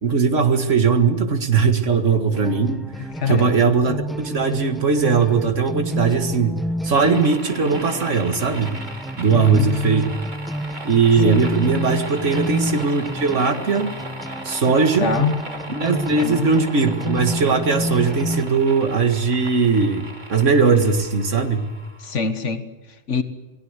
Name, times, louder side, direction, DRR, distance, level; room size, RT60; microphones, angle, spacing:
voice 1, 0.0-8.8 9.2-10.0 10.8-13.9 14.4-15.1 15.7-21.7, right 5 dB, 80° right, 2.2 m, -19 dB
sound 1, 2.3-18.4, equal, ahead, 1.0 m, -30 dB
voice 2, 3.1-3.6 9.3-9.7 11.2-11.4 15.0-15.4 16.2-16.5 22.0-23.2, left 5 dB, 80° left, 1.7 m, -24 dB
sound 2, 7.0-22.1, right 2 dB, 40° right, 2.7 m, -37 dB
28.0 x 18.5 x 8.2 m
omnidirectional pair, 1.3 m